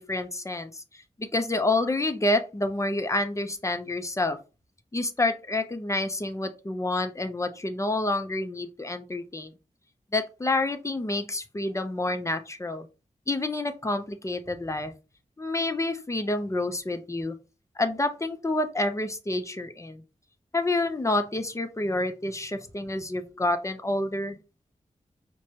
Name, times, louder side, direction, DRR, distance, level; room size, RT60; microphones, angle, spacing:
voice 1, 0.0-4.4 4.9-9.5 10.1-12.9 13.3-14.9 15.4-17.3 17.8-20.0 20.5-24.4, left 2 dB, 20° left, 0.6 m, -28 dB
4.6 x 2.2 x 2.9 m
wide cardioid pair, 65°, 14 cm